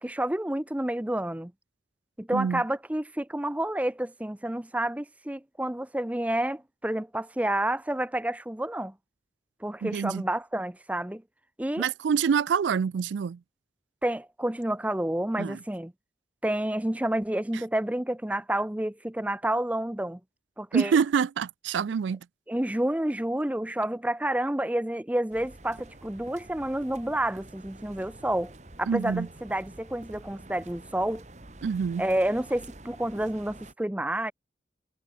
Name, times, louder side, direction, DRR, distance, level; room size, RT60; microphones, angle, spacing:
voice 1, 0.0-1.5 2.2-8.9 9.6-11.2 11.6-11.9 14.0-15.9 16.4-20.2 20.6-21.0 22.5-28.5 28.8-31.2 32.0-34.3, right 1 dB, 10° right, 0.5 m, -29 dB
voice 2, 2.3-2.6 9.8-10.2 11.8-13.4 15.4-15.6 20.7-22.2 28.9-29.3 31.6-32.0, right 6 dB, 85° right, 0.4 m, -26 dB
sound 1, 25.3-33.7, right 2 dB, 40° right, 1.8 m, -48 dB
head